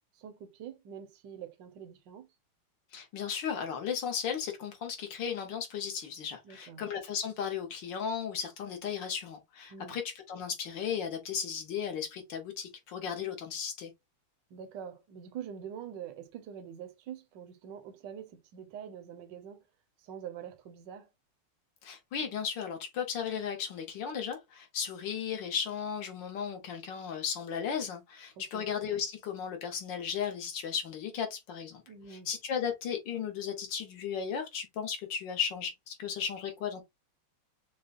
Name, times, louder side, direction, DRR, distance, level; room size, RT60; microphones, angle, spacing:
voice 1, 0.1-2.3 6.4-6.8 9.7-10.0 14.5-19.6 20.0-21.1 28.4-28.7 31.9-32.3, right 8 dB, 65° right, 1.3 m, -45 dB
voice 2, 2.9-13.9 21.8-31.8 32.1-36.8, left 7 dB, 60° left, 1.7 m, -35 dB
6.4 x 2.2 x 2.4 m
omnidirectional pair, 2.4 m